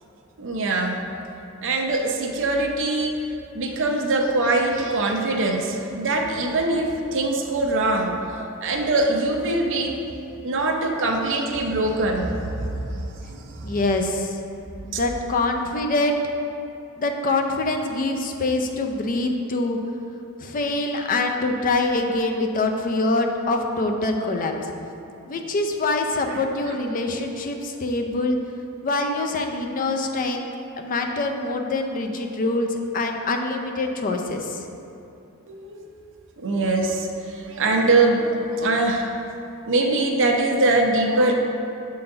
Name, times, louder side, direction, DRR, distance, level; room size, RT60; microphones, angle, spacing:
voice 1, 0.4-1.0 1.6-3.3 3.5-8.1 8.6-10.0 10.4-13.7 14.9-15.0 26.3-26.4 26.7-26.8 35.5-35.9 36.4-39.1 39.6-41.3, right 2 dB, 60° right, 2 dB, 0.7 m, -23 dB
voice 2, 13.6-14.4 14.8-16.2 17.0-19.8 20.4-24.7 25.2-28.4 28.8-30.5 30.8-34.6, left 2 dB, 40° left, 3 dB, 0.5 m, -24 dB
6.9 x 3.9 x 3.8 m, 2.8 s
head